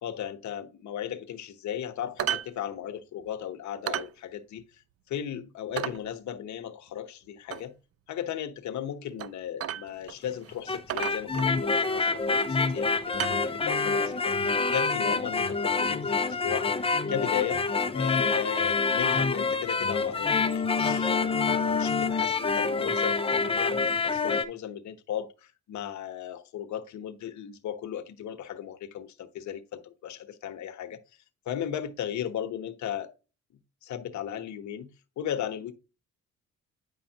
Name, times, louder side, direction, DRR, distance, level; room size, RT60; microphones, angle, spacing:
voice 1, 0.0-4.8 5.1-7.7 8.1-16.7 17.1-17.6 17.9-31.0 31.5-33.1 33.8-34.9 35.2-35.7, left 10 dB, 70° left, 1.0 m, -36 dB
sound 1, 2.2-2.5 2.8-2.9 3.3-3.4 3.9-4.1 4.6-4.7 5.1-5.2 5.8-6.0 7.5-7.6 9.2-9.3 9.6-10.2 10.4-10.5 10.9-11.8 12.6-12.8 13.1-13.9 14.9-15.0, right 11 dB, 50° right, 0.5 m, -33 dB
sound 2, 10.5-24.4, left 4 dB, 20° left, 0.7 m, -26 dB
8.7 x 5.4 x 2.8 m
cardioid pair, 90°, 30 cm